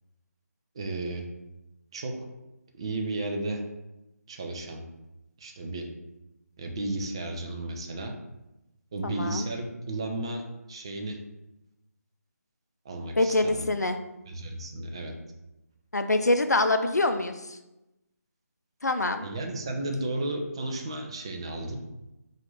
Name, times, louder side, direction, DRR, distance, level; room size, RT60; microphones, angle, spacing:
voice 1, 0.7-1.3 1.9-2.1 2.7-3.6 4.3-4.8 5.4-5.8 6.6-8.1 8.9-10.4 10.7-11.2 12.8-13.6 14.3-15.1 19.2-21.8, right 2 dB, 20° right, 3 dB, 0.3 m, -33 dB
voice 2, 9.0-9.5 13.2-14.0 15.9-17.6 18.8-19.2, left 2 dB, 85° left, 7 dB, 0.5 m, -25 dB
4.3 x 2.5 x 3.8 m, 0.96 s
figure-of-eight pair, 155°, 9 cm